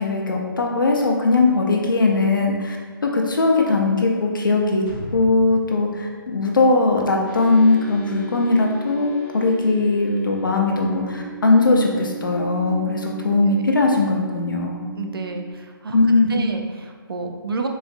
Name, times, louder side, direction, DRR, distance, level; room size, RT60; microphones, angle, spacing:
voice 1, 0.0-2.8 3.0-4.8 5.1-14.9 15.9-16.5, left 3 dB, 60° left, 1 dB, 0.6 m, -19 dB
sound 1, 4.9-7.7 8.0-8.1, equal, 10° left, 0.4 m, -38 dB
sound 2, 7.2-15.5, right 5 dB, 40° right, 1.2 m, -36 dB
voice 2, 15.0-17.7, right 3 dB, 75° right, 4 dB, 0.4 m, -30 dB
3.8 x 2.4 x 2.5 m, 1.5 s
hypercardioid pair, 180°, 12 cm